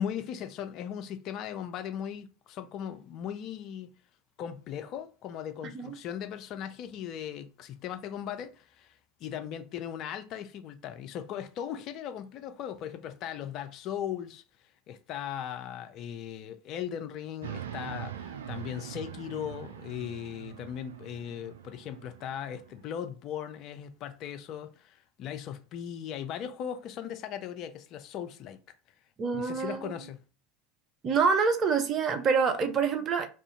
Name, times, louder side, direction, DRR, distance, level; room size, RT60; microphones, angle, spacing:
voice 1, 0.0-3.9 4.4-8.9 9.2-14.4 14.9-28.6 29.3-30.2, left 9 dB, 45° left, 0.5 m, -38 dB
sound 1, 17.4-22.9, right 9 dB, 70° right, 0.3 m, -43 dB
voice 2, 29.2-29.9 31.0-33.3, right 5 dB, 35° right, 0.6 m, -26 dB
2.5 x 2.4 x 3.6 m
figure-of-eight pair, 75°, 0 cm